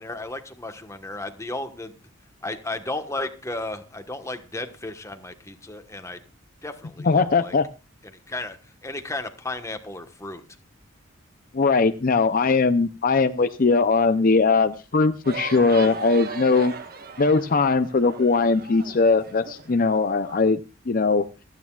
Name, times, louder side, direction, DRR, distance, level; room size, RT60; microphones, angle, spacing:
voice 1, 0.0-1.9 2.4-6.2 6.6-7.5 8.3-8.6 8.8-10.4, left 2 dB, 15° left, 7 dB, 1.3 m, -34 dB
voice 2, 7.0-7.7 11.5-16.7 17.2-20.6 20.9-21.3, left 4 dB, 45° left, 9 dB, 0.6 m, -20 dB
sound 1, 15.2-20.4, right 4 dB, 50° right, 1.5 m, -37 dB
27.5 x 9.6 x 2.4 m, 0.30 s
head